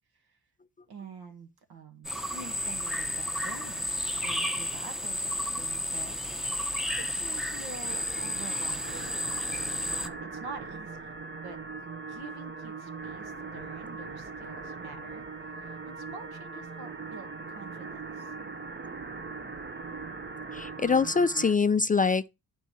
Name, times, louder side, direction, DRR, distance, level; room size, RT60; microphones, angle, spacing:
voice 1, 0.9-6.3 6.8-9.3 10.0-11.6 12.1-15.3 15.6-18.3, right 4 dB, 75° right, 1.7 m, -46 dB
sound 1, 2.0-10.1, left 1 dB, ahead, 0.9 m, -32 dB
sound 2, 7.8-21.6, right 4 dB, 30° right, 0.8 m, -40 dB
voice 2, 20.5-22.3, left 5 dB, 25° left, 0.3 m, -24 dB
9.3 x 4.6 x 4.2 m
cardioid pair, 75°, 38 cm